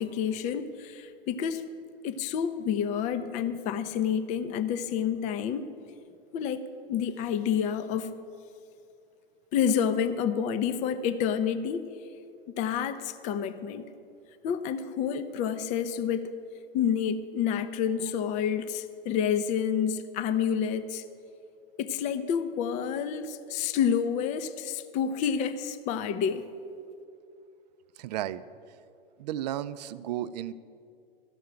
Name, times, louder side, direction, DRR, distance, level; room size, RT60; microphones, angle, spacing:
voice 1, 0.0-1.6 2.0-5.7 6.3-6.6 6.9-8.1 9.5-11.9 12.5-13.9 14.4-16.3 16.7-21.0 21.8-26.4, left 8 dB, 25° left, 12 dB, 0.5 m, -29 dB
voice 2, 28.0-28.4 29.2-30.5, right 12 dB, 45° right, 14 dB, 0.5 m, -33 dB
13.5 x 5.6 x 8.8 m, 2.5 s
figure-of-eight pair, 110°, 30 cm